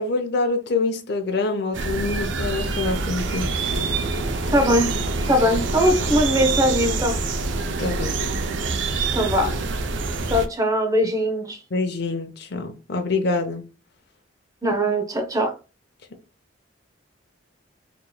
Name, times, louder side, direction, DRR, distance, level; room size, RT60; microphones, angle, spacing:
voice 1, 0.0-3.5 7.8-8.2 11.7-13.6, left 3 dB, 60° left, 0.6 m, -25 dB
sound 1, 1.7-10.5, right 3 dB, 70° right, 0.5 m, -26 dB
voice 2, 4.5-4.9 5.3-7.2 9.1-9.5 10.3-11.6 14.6-15.5, equal, 20° right, 0.7 m, -21 dB
4.5 x 3.0 x 2.2 m
head